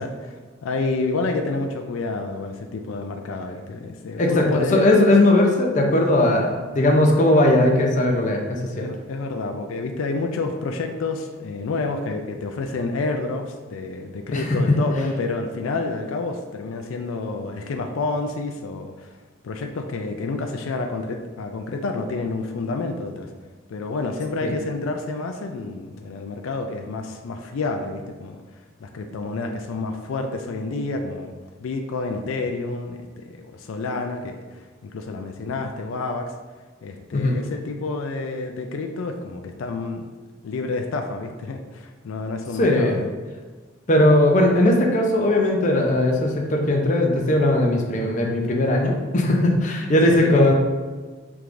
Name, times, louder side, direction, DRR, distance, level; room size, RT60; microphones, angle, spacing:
voice 1, 0.0-4.8 8.7-19.1 19.4-23.3 23.7-28.4 28.8-31.3 31.6-34.4 34.8-36.3 36.8-40.0 40.4-43.0 50.1-50.5, left 3 dB, 85° left, 5 dB, 0.4 m, -29 dB
voice 2, 4.2-8.9 14.3-14.9 24.4-24.5 37.1-37.4 42.6-43.0 43.9-50.5, left 1 dB, 40° left, 1 dB, 0.6 m, -18 dB
4.6 x 3.5 x 2.5 m, 1.4 s
head